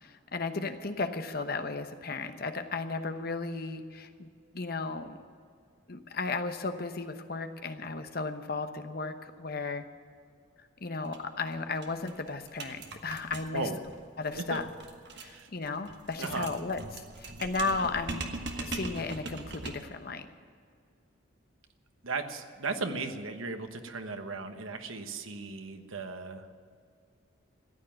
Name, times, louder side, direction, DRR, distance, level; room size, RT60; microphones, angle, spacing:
voice 1, 0.0-4.3 4.5-5.2 5.9-9.9 10.6-13.6 14.2-14.6 15.1-16.8 17.2-18.2 18.6-20.3, left 3 dB, 50° left, 8 dB, 1.0 m, -35 dB
sound 1, 11.1-11.2 11.5-11.6 11.8-20.0, right 3 dB, 55° right, 1.3 m, -41 dB
voice 2, 15.2-15.5 16.2-16.5 22.0-26.5, right 3 dB, 85° right, 7 dB, 1.2 m, -36 dB
14.5 x 9.5 x 8.9 m, 2.1 s
head